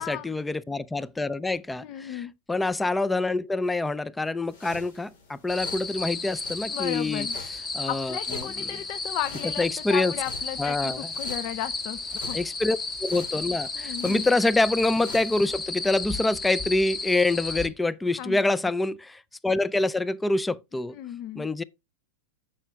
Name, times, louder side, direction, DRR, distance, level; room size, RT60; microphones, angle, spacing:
voice 1, 0.0-7.3 7.7-8.2 9.6-10.1 10.6-11.0 12.3-20.9 21.4-21.6, left 2 dB, 10° left, 0.4 m, -26 dB
voice 2, 1.8-2.3 6.7-7.4 7.9-12.4 13.7-14.3 18.2-18.4 20.9-21.5, left 12 dB, 45° left, 0.6 m, -34 dB
sound 1, 4.4-15.7, left 3 dB, 75° left, 3.6 m, -47 dB
sound 2, 5.5-17.7, left 3 dB, 30° left, 1.5 m, -33 dB
8.7 x 6.3 x 3.4 m
hypercardioid pair, 115°, 0 cm